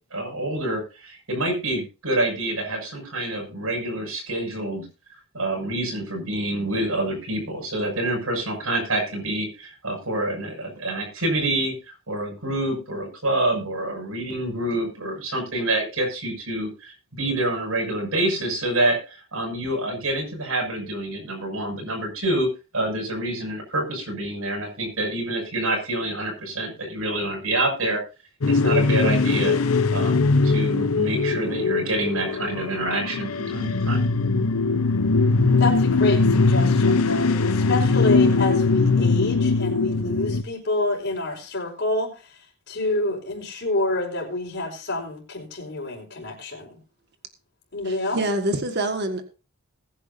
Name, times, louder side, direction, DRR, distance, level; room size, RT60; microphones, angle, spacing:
voice 1, 0.1-4.9 5.3-22.5 22.7-28.0 28.5-29.6 29.9-34.0, right 1 dB, 75° right, 1 dB, 6.4 m, -27 dB
sound 1, 28.4-40.4, left 3 dB, 75° left, 0.8 m, -21 dB
voice 2, 35.6-46.8 47.7-48.2, left 2 dB, 50° left, -6 dB, 4.7 m, -27 dB
voice 3, 47.9-49.2, right 1 dB, 50° right, 6 dB, 1.8 m, -26 dB
21.0 x 10.0 x 2.7 m, 0.32 s
head